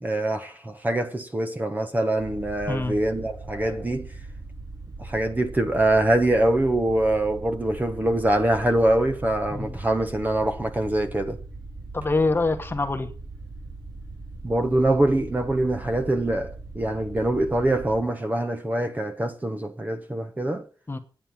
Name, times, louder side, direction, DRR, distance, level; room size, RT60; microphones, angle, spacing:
voice 1, 0.0-4.1 5.0-11.4 14.4-20.7, right 1 dB, 20° right, 1.0 m, -24 dB
sound 1, 2.2-18.0, right 3 dB, 45° right, 6.5 m, -40 dB
voice 2, 11.9-13.1 20.9-21.0, left 3 dB, 25° left, 1.2 m, -25 dB
9.6 x 8.8 x 7.5 m
wide cardioid pair, 155°, 9 cm